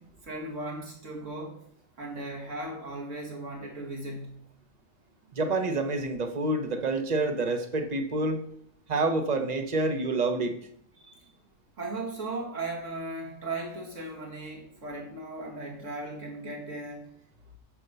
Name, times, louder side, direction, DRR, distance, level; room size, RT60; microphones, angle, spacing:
voice 1, 0.0-1.6 2.0-4.4 11.8-17.1, right 2 dB, 50° right, -1 dB, 2.4 m, -37 dB
voice 2, 5.3-8.4 8.9-10.6, right 2 dB, 30° right, 6 dB, 0.9 m, -28 dB
9.5 x 4.6 x 6.8 m, 0.68 s
omnidirectional pair, 1.6 m